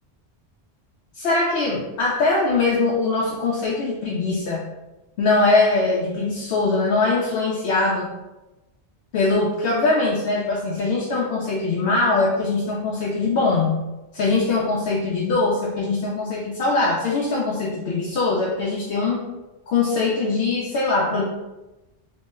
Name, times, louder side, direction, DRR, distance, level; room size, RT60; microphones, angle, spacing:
voice 1, 1.1-4.7 5.2-8.1 9.1-13.8 14.1-19.2 19.7-21.3, left 3 dB, 65° left, -4 dB, 0.7 m, -22 dB
2.9 x 2.0 x 3.4 m, 1.0 s
omnidirectional pair, 1.2 m